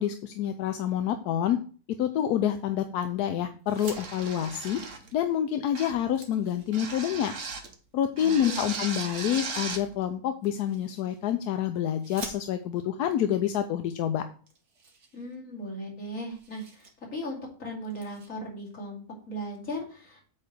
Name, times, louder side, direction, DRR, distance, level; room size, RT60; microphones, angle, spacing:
voice 1, 0.0-1.6 2.0-4.8 5.1-7.3 7.9-14.2, left 10 dB, 85° left, 7 dB, 1.2 m, -27 dB
sound 1, 3.6-4.0 5.4-5.5 5.8-7.2 8.3-9.1 10.4-11.3 12.0-12.9 13.7-13.8 14.1-14.2 14.5-15.8 16.0-16.9 17.3-17.5 17.9-18.3, right 4 dB, 90° right, 1.9 m, -48 dB
sound 2, 3.8-5.1 5.7-6.1 6.7-7.7 8.2-9.9, right 4 dB, 55° right, 1.4 m, -37 dB
voice 2, 8.2-8.7 15.1-20.3, equal, 60° left, -3 dB, 3.0 m, -38 dB
8.4 x 3.3 x 6.6 m, 0.41 s
omnidirectional pair, 1.6 m